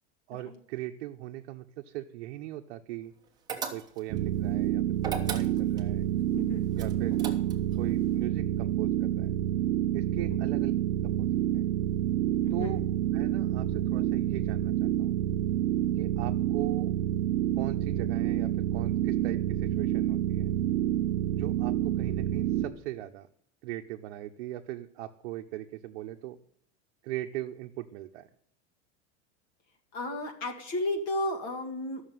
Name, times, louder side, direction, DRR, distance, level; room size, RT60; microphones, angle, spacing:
voice 1, 0.3-3.1 3.7-6.1 6.7-7.4 7.8-9.3 9.9-10.7 11.2-11.3 11.5-11.6 12.5-12.8 13.1-15.2 16.0-16.9 17.6-20.5 21.3-23.3 23.6-26.4 27.0-28.3, right 15 dB, 65° right, 4 dB, 0.9 m, -39 dB
sound 1, 3.5-4.2 5.0-5.9 6.8-7.7, right 6 dB, 10° right, 1.1 m, -36 dB
sound 2, 4.1-22.7, right 12 dB, 35° right, 0.7 m, -28 dB
voice 2, 6.3-6.7 10.2-10.4 12.5-12.7 29.9-32.0, left 2 dB, 40° left, 4 dB, 2.1 m, -33 dB
13.0 x 6.6 x 9.2 m, 0.65 s
supercardioid pair, 175°, 35 cm